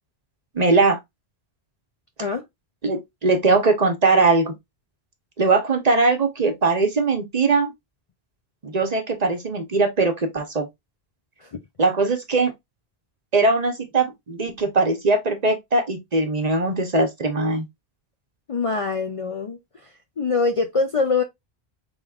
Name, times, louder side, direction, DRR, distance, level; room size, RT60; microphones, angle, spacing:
voice 1, 0.5-1.0 2.8-4.5 5.4-7.7 8.6-10.7 11.8-12.5 13.3-17.7, right 3 dB, 40° right, 0.9 m, -20 dB
voice 2, 18.5-19.6 20.2-21.2, left 4 dB, 45° left, 0.4 m, -23 dB
4.9 x 3.5 x 2.3 m
omnidirectional pair, 1.1 m